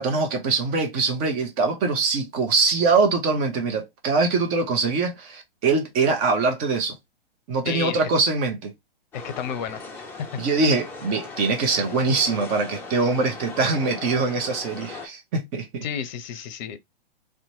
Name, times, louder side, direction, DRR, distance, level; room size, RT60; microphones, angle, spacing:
voice 1, 0.0-7.0 7.5-8.7 10.4-15.9, right 4 dB, 30° right, 0.8 m, -23 dB
voice 2, 7.6-8.0 9.1-9.8 15.8-16.8, left 8 dB, 50° left, 0.6 m, -31 dB
sound 1, 9.1-15.1, left 3 dB, 5° left, 0.5 m, -38 dB
2.8 x 2.2 x 2.7 m
hypercardioid pair, 120°, 30 cm